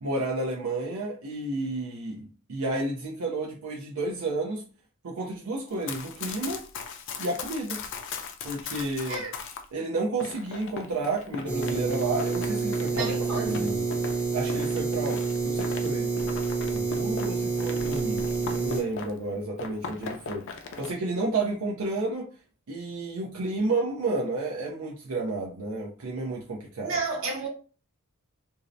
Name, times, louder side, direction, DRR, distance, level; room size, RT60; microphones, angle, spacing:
voice 1, 0.0-4.6 5.0-6.6 7.2-7.8 8.4-9.2 9.7-13.9 14.3-16.1 16.7-22.3 22.7-27.0, right 2 dB, 90° right, 0.5 m, -31 dB
Run, 5.7-9.6 10.2-19.3 19.6-20.9, left 5 dB, 60° left, 0.4 m, -39 dB
sound 1, 11.5-18.8, right 4 dB, 5° right, 0.5 m, -28 dB
voice 2, 12.9-13.7 26.8-27.5, right 3 dB, 65° right, 1.0 m, -32 dB
2.6 x 2.0 x 2.5 m
head